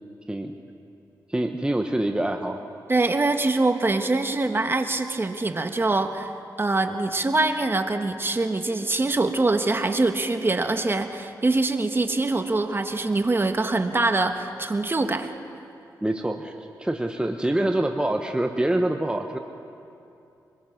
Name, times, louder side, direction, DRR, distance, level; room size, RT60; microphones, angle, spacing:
voice 1, 1.3-2.6 16.0-19.4, right 1 dB, 10° right, 4 dB, 1.2 m, -25 dB
voice 2, 2.9-6.3 6.6-15.3, right 2 dB, 30° right, 7 dB, 1.5 m, -24 dB
24.0 x 21.5 x 6.0 m, 2.7 s
cardioid pair, 65°, 8 cm